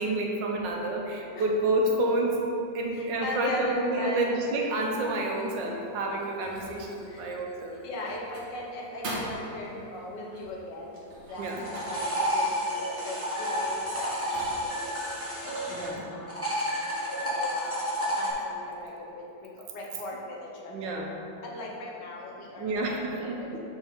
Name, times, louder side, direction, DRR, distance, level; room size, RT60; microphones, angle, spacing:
voice 1, 0.0-2.5 2.7-7.8 11.4-11.7 15.6-16.1 20.7-21.1 22.6-23.6, right 2 dB, 85° right, 1 dB, 1.5 m, -29 dB
voice 2, 2.9-4.3 7.1-7.2 7.8-10.9 11.3-14.5 15.4-16.3 17.1-19.2 19.7-21.0 21.4-23.5, left 2 dB, 75° left, -2 dB, 1.5 m, -38 dB
sound 1, 4.8-16.0, right 1 dB, 45° right, 1.2 m, -45 dB
sound 2, 11.4-15.9 16.3-18.3, equal, 10° right, 0.9 m, -30 dB
6.7 x 4.4 x 3.7 m, 2.8 s
omnidirectional pair, 1.9 m